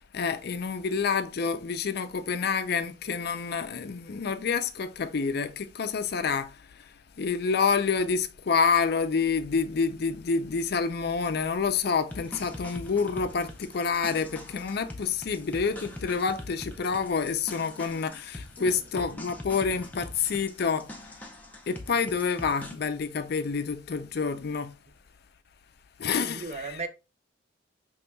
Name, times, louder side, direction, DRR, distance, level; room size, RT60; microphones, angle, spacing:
voice 1, 0.1-6.5 7.2-20.9 21.7-24.7 26.0-26.8, left 5 dB, 55° left, 0.4 m, -28 dB
sound 1, 12.1-22.7, left 1 dB, 10° left, 0.6 m, -43 dB
voice 2, 26.2-26.9, right 3 dB, 35° right, 0.5 m, -36 dB
5.3 x 3.0 x 2.2 m
head